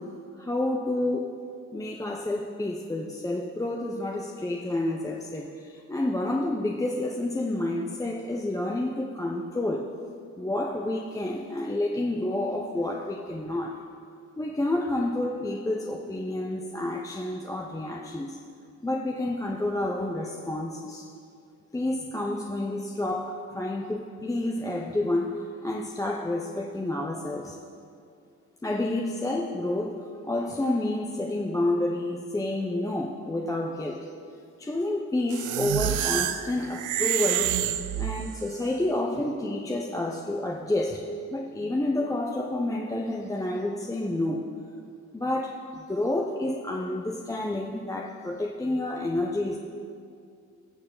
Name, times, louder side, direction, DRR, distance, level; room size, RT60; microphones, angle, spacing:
voice 1, 0.4-1.4 1.7-9.9 10.4-13.8 14.4-18.4 18.8-21.1 21.7-27.6 28.6-34.1 34.6-37.5 38.0-41.0 41.3-44.5 45.1-49.6, left 1 dB, 10° left, 0 dB, 0.7 m, -29 dB
sound 1, 35.3-38.6, right 12 dB, 90° right, 0.5 m, -28 dB
17.0 x 6.6 x 3.9 m, 2.3 s
cardioid pair, 90°, 30 cm